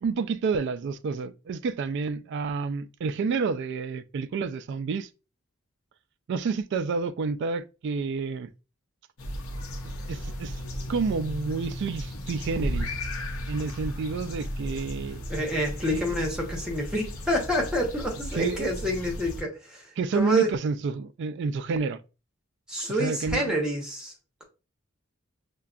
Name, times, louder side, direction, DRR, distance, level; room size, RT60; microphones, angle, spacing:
voice 1, 0.0-5.1 6.3-8.5 9.8-10.6 10.9-12.9 13.5-15.2 15.8-16.0 18.3-18.7 20.0-22.0 23.0-23.6, right 4 dB, 55° right, 0.3 m, -29 dB
sound 1, 9.2-19.4, equal, 90° left, 0.7 m, -35 dB
voice 2, 15.3-20.5 22.7-24.1, equal, 5° right, 0.9 m, -28 dB
5.6 x 2.2 x 2.4 m
head